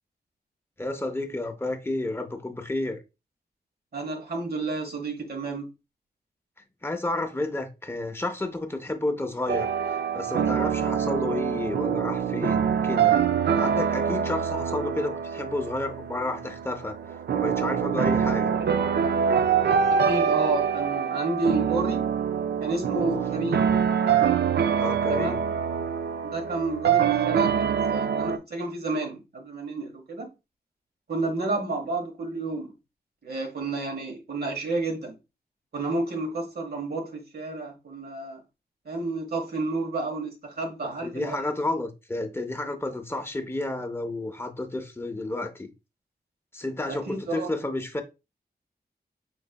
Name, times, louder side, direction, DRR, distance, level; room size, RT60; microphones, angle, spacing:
voice 1, 0.8-3.0 6.8-13.2 13.5-17.0 17.3-18.5 24.8-25.4 41.0-45.7 46.5-48.0, left 2 dB, 15° left, 0.7 m, -31 dB
voice 2, 3.9-5.7 19.9-22.1 22.6-23.6 25.1-25.5 26.2-30.3 31.1-32.7 33.2-35.2 35.7-38.4 38.8-41.5 46.9-47.5, right 2 dB, 70° right, 1.3 m, -31 dB
sound 1, 9.5-28.4, right 7 dB, 85° right, 0.4 m, -25 dB
5.3 x 3.9 x 2.2 m
wide cardioid pair, 135°, 17 cm